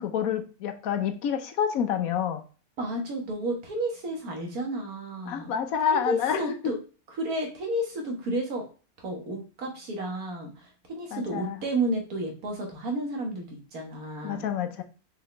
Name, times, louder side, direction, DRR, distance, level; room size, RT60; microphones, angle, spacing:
voice 1, 0.0-2.4 5.3-6.4 11.1-11.6 14.2-14.8, left 8 dB, 70° left, 8 dB, 1.2 m, -28 dB
voice 2, 2.8-5.5 5.9-6.8 7.2-8.6 9.0-14.5, right 1 dB, 70° right, 2 dB, 2.0 m, -31 dB
6.4 x 4.9 x 3.3 m, 0.37 s
omnidirectional pair, 1.6 m